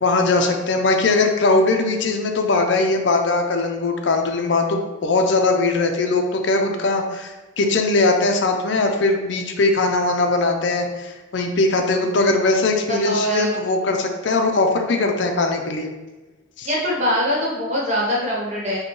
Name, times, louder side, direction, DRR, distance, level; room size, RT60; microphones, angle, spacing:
voice 1, 0.0-15.9 16.6-16.7, left 3 dB, 60° left, 3 dB, 0.5 m, -20 dB
voice 2, 13.0-13.5 16.6-18.8, equal, 35° right, -5 dB, 1.1 m, -22 dB
5.2 x 2.2 x 3.0 m, 1.1 s
head